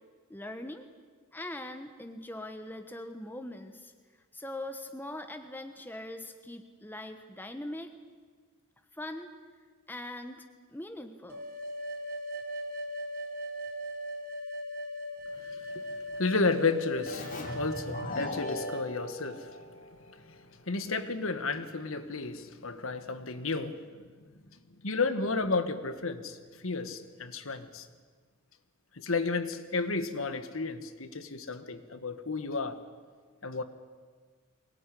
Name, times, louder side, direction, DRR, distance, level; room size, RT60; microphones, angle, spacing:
voice 1, 0.3-0.8 1.3-3.9 4.3-8.0 8.9-9.3 9.9-10.4 10.7-11.5, left 1 dB, 10° left, 6 dB, 1.1 m, -41 dB
sound 1, 11.3-18.9, equal, 40° right, 1.5 m, -39 dB
voice 2, 15.5-15.8 16.1-19.6 20.1-20.3 20.7-23.8 24.8-27.9 28.9-32.8 33.4-33.6, left 3 dB, 70° left, 10 dB, 1.5 m, -32 dB
Keyboard (musical), 17.1-20.4, left 1 dB, 40° left, 3.4 m, -39 dB
22.5 x 18.5 x 9.9 m, 1.6 s
head